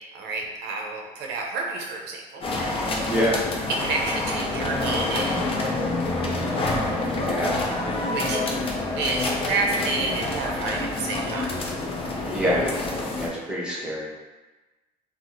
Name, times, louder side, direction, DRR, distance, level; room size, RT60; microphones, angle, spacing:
voice 1, 0.1-2.5 3.7-5.4 8.1-8.4 9.0-11.6, right 3 dB, 85° right, 0 dB, 0.5 m, -29 dB
sound 1, 2.4-13.3, left 2 dB, 35° left, 0.5 m, -27 dB
voice 2, 3.0-3.4 6.2-6.8 7.2-7.6 12.3-12.8 13.2-14.1, equal, 5° right, -6 dB, 0.8 m, -27 dB
2.8 x 2.0 x 3.7 m, 1.2 s
cardioid pair, 110°, 17 cm